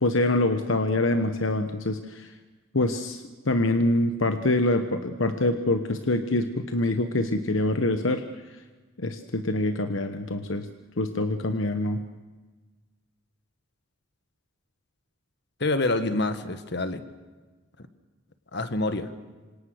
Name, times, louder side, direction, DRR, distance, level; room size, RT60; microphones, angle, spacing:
voice 1, 0.0-2.3 2.7-8.2 9.0-10.7 11.0-12.0, left 2 dB, 70° left, 8 dB, 1.2 m, -25 dB
voice 2, 15.6-17.0 18.5-19.1, left 2 dB, 55° left, 10 dB, 1.6 m, -26 dB
27.0 x 26.0 x 6.5 m, 1.3 s
head